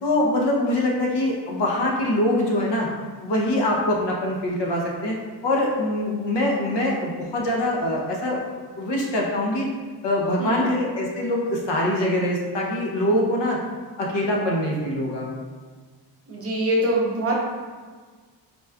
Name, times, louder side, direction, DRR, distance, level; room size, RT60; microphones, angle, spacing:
voice 1, 0.0-2.9 3.2-5.2 5.4-8.4 8.8-9.7 10.0-13.6 14.0-15.3, left 1 dB, 70° left, -2 dB, 0.8 m, -23 dB
voice 2, 16.3-17.4, right 1 dB, 30° right, -3 dB, 0.6 m, -23 dB
4.1 x 2.3 x 3.4 m, 1.5 s
wide cardioid pair, 155°, 44 cm